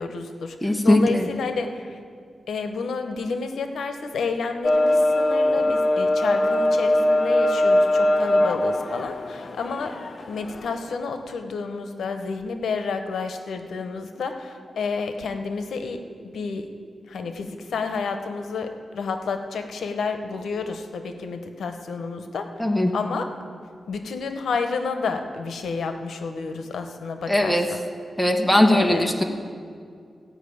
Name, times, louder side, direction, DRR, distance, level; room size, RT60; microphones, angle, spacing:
voice 1, 0.0-2.0 2.5-10.0 10.3-16.7 17.1-22.5 22.9-23.3 23.9-27.8 28.7-29.1, left 4 dB, 90° left, 7 dB, 0.9 m, -30 dB
voice 2, 0.6-1.3 22.6-22.9 27.3-27.7 28.2-29.2, left 1 dB, ahead, 3 dB, 1.0 m, -19 dB
sound 1, 4.6-10.9, left 1 dB, 40° left, 0.6 m, -21 dB
16.0 x 5.6 x 8.5 m, 2.3 s
wide cardioid pair, 130°, 0 cm